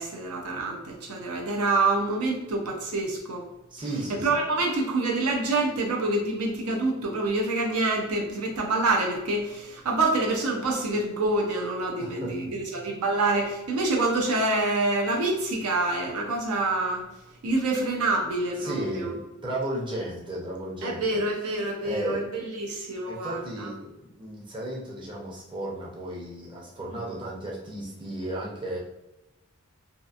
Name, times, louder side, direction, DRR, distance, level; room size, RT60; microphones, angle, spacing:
voice 1, 0.0-3.4 4.2-17.1 17.4-19.1 20.8-23.7, right 2 dB, 80° right, 0 dB, 0.6 m, -26 dB
voice 2, 3.7-4.4 12.0-12.4 18.6-21.2 21.8-22.2 23.1-28.8, right 1 dB, 20° right, -4 dB, 0.6 m, -34 dB
2.8 x 2.4 x 2.4 m, 0.95 s
head